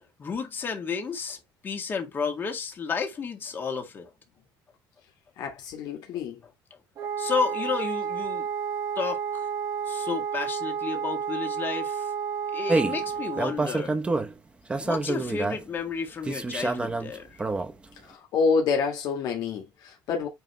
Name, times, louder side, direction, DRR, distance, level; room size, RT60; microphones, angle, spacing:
voice 1, 0.2-1.4 1.6-4.1 7.2-8.5 9.0-9.2 9.9-12.1 12.5-13.9 14.8-17.4, left 5 dB, 25° left, 2.0 m, -31 dB
voice 2, 5.4-6.4 18.0-20.3, left 5 dB, 60° left, 1.8 m, -27 dB
Wind instrument woodwind instrument, 7.0-13.6, right 7 dB, 40° right, 1.3 m, -31 dB
sound 1, 12.7-13.0 13.4-14.3 14.7-15.6 16.2-17.7, right 3 dB, 15° right, 0.8 m, -27 dB
9.0 x 3.3 x 3.2 m
cardioid pair, 160°, 8 cm